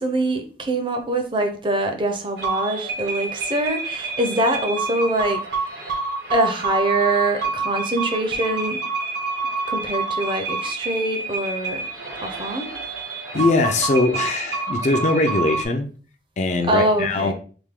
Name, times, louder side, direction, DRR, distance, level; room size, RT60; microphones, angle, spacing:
voice 1, 0.0-5.8 6.3-8.8 9.7-11.9 12.1-12.7 16.6-17.3, right 1 dB, 30° right, 5 dB, 0.6 m, -24 dB
sound 1, 2.4-15.7, right 4 dB, 75° right, 1.1 m, -28 dB
voice 2, 13.3-15.9 16.4-17.3, left 3 dB, 40° left, 6 dB, 0.4 m, -21 dB
3.4 x 2.6 x 3.6 m, 0.40 s
head